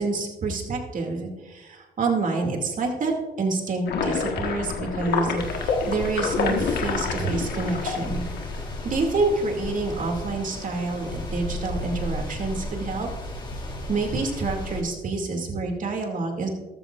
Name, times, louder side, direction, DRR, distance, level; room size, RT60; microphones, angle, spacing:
voice 1, 0.0-3.1 3.4-8.2 8.8-13.1 13.9-16.5, right 3 dB, 50° right, 2 dB, 2.5 m, -27 dB
sound 1, 3.9-9.0, left 5 dB, 70° left, 1.6 m, -28 dB
sound 2, 5.4-14.8, left 1 dB, 25° left, 3.1 m, -34 dB
14.0 x 13.0 x 2.5 m, 1.2 s
cardioid pair, 75°, 17 cm